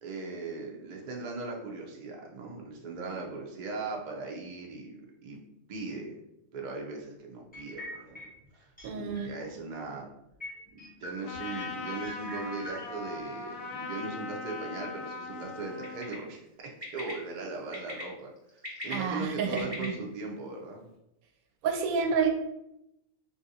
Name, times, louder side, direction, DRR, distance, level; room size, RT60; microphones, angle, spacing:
voice 1, 0.0-5.4 5.7-6.2 6.5-8.3 8.5-8.7 8.9-10.1 10.7-16.4 16.9-18.3 18.8-20.8, right 3 dB, 55° right, 0 dB, 0.5 m, -39 dB
sound 1, 7.5-8.5 8.8-9.5 9.8-9.9 10.4-12.9, equal, 10° left, 0.5 m, -43 dB
voice 2, 8.8-9.3 18.9-19.9 21.6-22.3, right 6 dB, 85° right, 3 dB, 1.0 m, -29 dB
Trumpet, 11.2-16.2, left 4 dB, 75° left, 1.0 m, -40 dB
Bird, 15.8-16.1 16.8-17.1 17.7-18.0 18.5-19.8, left 1 dB, 25° right, 1.1 m, -39 dB
3.3 x 2.5 x 2.7 m, 0.83 s
omnidirectional pair, 1.5 m